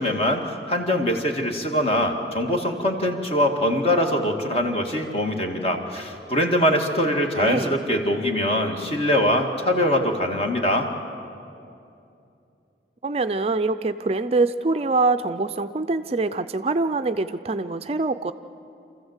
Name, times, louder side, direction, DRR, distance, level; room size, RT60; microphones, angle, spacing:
voice 1, 0.0-10.9, left 1 dB, 35° left, 3 dB, 1.9 m, -23 dB
voice 2, 7.4-7.8 13.0-18.3, right 3 dB, 35° right, 10 dB, 0.4 m, -24 dB
27.5 x 14.5 x 8.1 m, 2.6 s
head